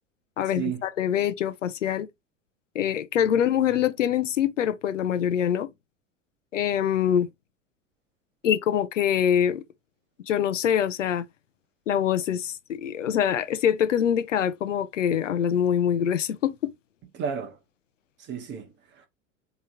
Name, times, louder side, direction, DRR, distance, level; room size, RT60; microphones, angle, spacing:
voice 1, 0.4-2.1 2.7-5.7 6.5-7.3 8.4-9.6 10.3-11.3 11.9-16.7, left 9 dB, 70° left, 0.6 m, -24 dB
voice 2, 17.1-17.6 18.2-19.1, right 7 dB, 30° right, 1.1 m, -33 dB
3.9 x 3.1 x 3.8 m
figure-of-eight pair, 85°, 39 cm